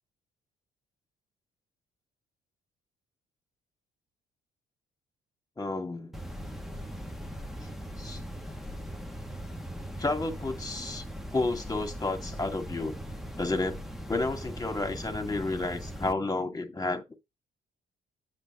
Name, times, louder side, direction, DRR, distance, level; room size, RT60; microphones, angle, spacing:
voice 1, 5.6-6.1 8.0-8.2 10.0-11.0 11.3-13.0 13.4-13.8 14.1-17.0, left 2 dB, 20° left, 2.3 m, -31 dB
sound 1, 6.1-16.1, equal, ahead, 1.4 m, -40 dB
8.2 x 5.5 x 3.9 m
cardioid pair, 90°, 20 cm